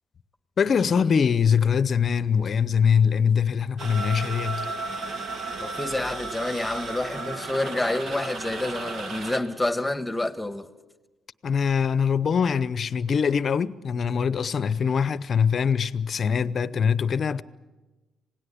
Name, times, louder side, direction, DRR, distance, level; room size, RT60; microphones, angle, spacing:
voice 1, 0.6-4.7 11.4-17.4, left 6 dB, 50° left, 0.8 m, -23 dB
sound 1, 3.8-9.4, right 3 dB, 65° right, 3.1 m, -34 dB
voice 2, 5.6-10.7, left 2 dB, 10° left, 1.5 m, -28 dB
27.0 x 18.0 x 8.5 m
cardioid pair, 90°, 0 cm